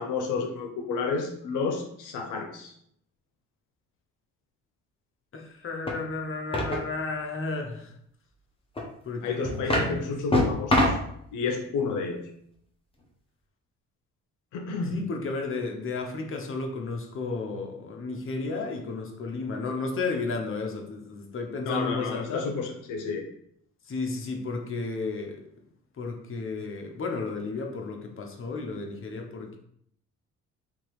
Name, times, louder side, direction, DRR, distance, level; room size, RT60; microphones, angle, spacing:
voice 1, 0.0-2.7 9.2-11.0 11.3-12.3 14.5-15.0 21.6-23.2, left 4 dB, 90° left, 3 dB, 0.7 m, -31 dB
voice 2, 5.3-7.9 9.0-10.6 14.9-22.5 23.9-25.4 26.0-29.6, left 3 dB, 45° left, 2 dB, 1.0 m, -33 dB
sound 1, 5.9-6.0 6.5-6.9 8.8-8.9 9.4-9.9 10.3-11.1, left 1 dB, 20° left, 1.1 m, -24 dB
3.7 x 2.9 x 4.8 m, 0.70 s
cardioid pair, 90°, 30 cm